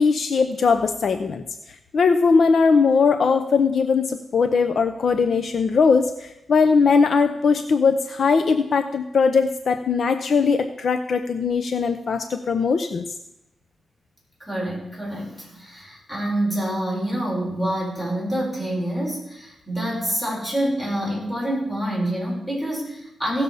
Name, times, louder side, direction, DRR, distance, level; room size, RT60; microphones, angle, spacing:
voice 1, 0.0-1.4 1.9-13.0, left 5 dB, 60° left, 9 dB, 0.6 m, -20 dB
voice 2, 14.4-23.4, right 1 dB, 15° left, -4 dB, 5.2 m, -27 dB
16.5 x 6.8 x 5.4 m, 0.85 s
wide cardioid pair, 120°, 0 cm